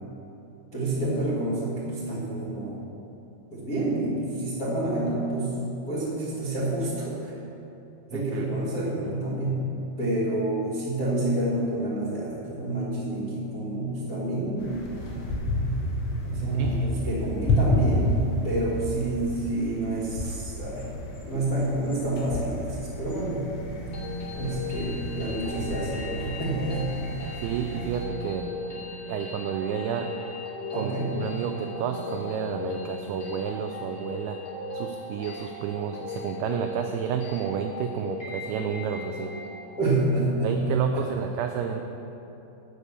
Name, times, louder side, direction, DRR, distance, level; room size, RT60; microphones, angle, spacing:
voice 1, 0.7-2.8 3.5-5.6 5.9-7.3 8.1-9.7 10.0-14.8 15.4-15.5 16.2-18.1 18.4-20.9 21.2-23.5 24.3-27.1 30.7-31.1 39.8-41.1, right 2 dB, 50° left, -12 dB, 1.0 m, -28 dB
voice 2, 8.1-8.5 16.6-16.9 27.4-28.5 29.1-30.1 30.7-34.4 34.7-39.3 40.4-41.8, right 8 dB, 85° right, 5 dB, 2.2 m, -31 dB
sound 1, 14.6-28.1, left 1 dB, 90° left, 3.9 m, -31 dB
sound 2, 23.7-39.7, left 3 dB, 30° left, 2.8 m, -38 dB
9.6 x 7.2 x 6.9 m, 3.0 s
omnidirectional pair, 5.1 m